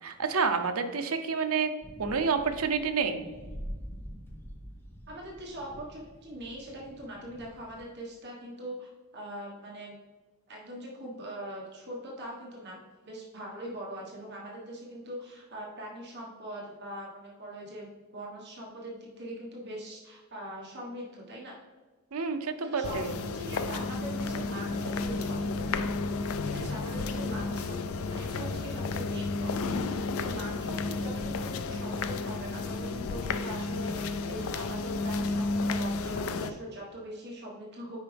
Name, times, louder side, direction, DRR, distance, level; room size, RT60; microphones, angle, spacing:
voice 1, 0.0-1.7 2.0-3.3 22.1-23.1, right 5 dB, 75° right, 6 dB, 0.7 m, -29 dB
sound 1, 1.8-7.8, equal, 10° left, 0.8 m, -45 dB
voice 2, 5.1-9.9 10.5-21.5 22.6-25.9 26.4-38.0, right 1 dB, 50° right, -3 dB, 1.4 m, -42 dB
sound 2, 22.8-36.5, left 3 dB, 70° left, 0.4 m, -32 dB
9.2 x 5.0 x 3.4 m, 1.3 s
head